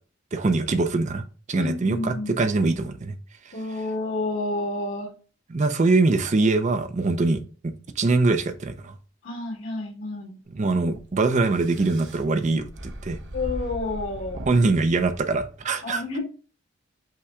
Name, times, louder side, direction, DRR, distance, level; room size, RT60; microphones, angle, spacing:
voice 1, 0.3-3.1 5.5-8.9 10.5-13.2 14.5-16.0, right 3 dB, 35° right, 0.4 m, -23 dB
voice 2, 1.5-2.5 3.5-5.1 9.2-10.4 13.3-14.5 15.8-16.2, left 2 dB, 75° left, 2.1 m, -30 dB
sound 1, 10.5-15.7, right 1 dB, 60° right, 0.8 m, -39 dB
5.6 x 2.2 x 3.5 m
head